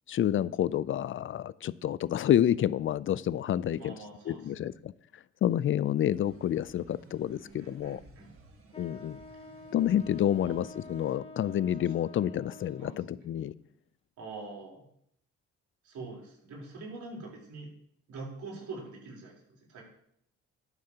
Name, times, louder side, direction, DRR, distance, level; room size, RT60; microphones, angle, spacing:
voice 1, 0.1-3.9 4.3-4.9 5.4-8.0 8.8-9.2 9.7-13.5, left 11 dB, 45° left, 0.4 m, -29 dB
voice 2, 3.8-4.7 7.4-8.3 10.4-10.6 12.8-13.3 14.2-14.9 15.8-17.7 18.1-19.8, right 3 dB, 75° right, 3.8 m, -44 dB
sound 1, 6.1-11.1, right 2 dB, 45° right, 1.6 m, -56 dB
Wind instrument woodwind instrument, 8.7-13.2, left 2 dB, 20° left, 0.8 m, -48 dB
11.5 x 9.4 x 2.9 m
cardioid pair, 90°, 30 cm